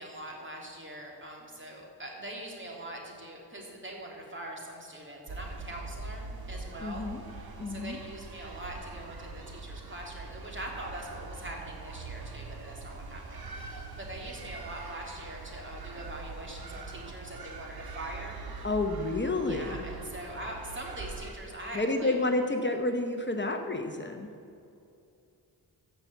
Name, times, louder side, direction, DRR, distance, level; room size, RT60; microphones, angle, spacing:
voice 1, 0.0-18.7 19.5-22.2, right 1 dB, 30° right, -1 dB, 3.2 m, -43 dB
sound 1, 5.3-21.3, right 3 dB, 65° right, 1.7 m, -43 dB
voice 2, 6.8-7.2 7.6-8.0 18.6-19.9 21.7-24.3, left 2 dB, 25° left, 5 dB, 1.0 m, -30 dB
15.0 x 6.1 x 8.1 m, 2.6 s
cardioid pair, 75°, 41 cm